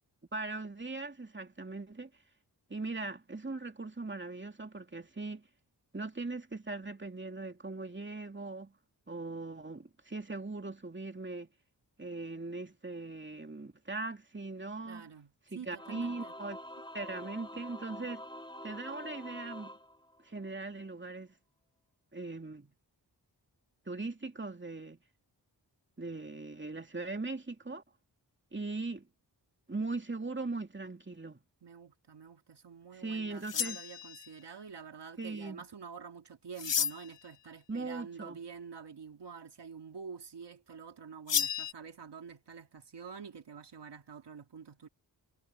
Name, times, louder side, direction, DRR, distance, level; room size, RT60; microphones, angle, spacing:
voice 1, 0.3-2.1 2.7-5.5 5.9-8.7 9.1-11.5 12.0-15.1 15.5-16.6 16.9-18.2 18.6-19.7 20.2-21.3 22.1-22.7 23.9-25.0 26.0-27.8 28.5-29.1 29.7-31.4 32.9-33.8 35.2-35.6 37.7-38.4, right 3 dB, 25° right, 2.6 m, -40 dB
voice 2, 14.8-16.3 31.6-44.9, right 6 dB, 70° right, 2.1 m, -48 dB
Singing / Musical instrument, 15.7-20.6, left 1 dB, 10° left, 2.7 m, -46 dB
sound 1, 33.4-34.4 36.6-37.2 41.3-41.7, left 8 dB, 85° left, 1.2 m, -32 dB
cardioid pair, 55°, 42 cm